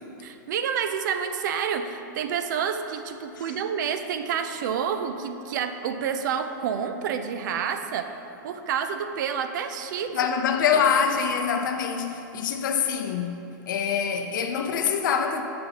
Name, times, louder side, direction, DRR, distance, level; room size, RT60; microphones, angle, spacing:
voice 1, 0.2-8.1 8.4-10.3 10.7-10.8, right 7 dB, 65° right, 0.5 m, -29 dB
voice 2, 10.1-15.4, left 7 dB, 70° left, 0.6 m, -25 dB
7.5 x 5.5 x 2.9 m
hypercardioid pair, 125°, 11 cm